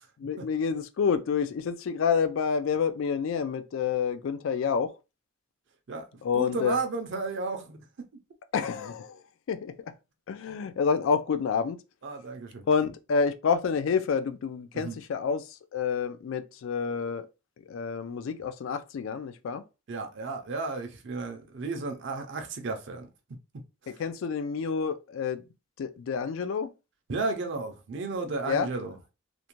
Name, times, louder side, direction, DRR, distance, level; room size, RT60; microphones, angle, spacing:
voice 1, 0.2-4.9 6.2-6.8 8.5-9.2 9.5-9.7 10.3-11.8 12.7-15.4 15.7-17.3 17.7-19.6 23.9-25.4 25.8-26.7 28.5-28.7, left 6 dB, 65° left, 0.3 m, -28 dB
voice 2, 6.3-7.8 12.0-12.6 14.7-15.0 19.9-23.1 23.8-23.9 27.1-29.0, right 3 dB, 55° right, 0.4 m, -33 dB
2.5 x 2.1 x 2.9 m
head